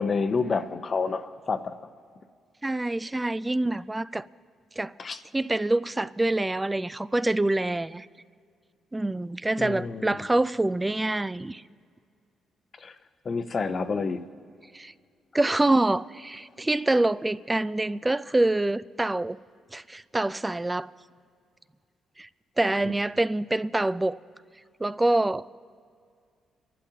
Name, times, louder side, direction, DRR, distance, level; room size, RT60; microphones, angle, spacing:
voice 1, 0.0-1.8 5.0-5.2 9.6-10.2 12.8-13.0 13.2-14.2 22.8-22.9, left 4 dB, 40° left, 0.8 m, -29 dB
voice 2, 2.6-4.3 4.8-4.9 5.3-8.1 8.9-11.6 14.7-14.9 15.3-19.4 19.7-20.9 22.2-22.3 22.6-24.2 24.8-25.5, right 2 dB, 15° right, 0.3 m, -26 dB
30.0 x 11.5 x 2.8 m
cardioid pair, 90°, 0 cm